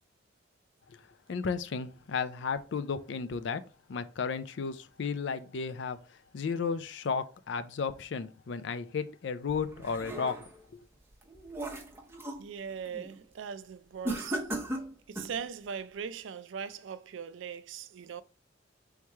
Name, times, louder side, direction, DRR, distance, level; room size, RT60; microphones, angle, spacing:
voice 1, 1.3-3.6 3.9-6.0 6.3-10.5, left 5 dB, 65° left, 0.4 m, -33 dB
sound 1, 9.5-10.6 11.1-12.5 12.9-13.2 14.0-15.4, right 1 dB, 10° right, 0.7 m, -37 dB
voice 2, 12.4-14.4 15.1-18.2, right 7 dB, 70° right, 0.4 m, -40 dB
3.6 x 3.1 x 4.4 m
head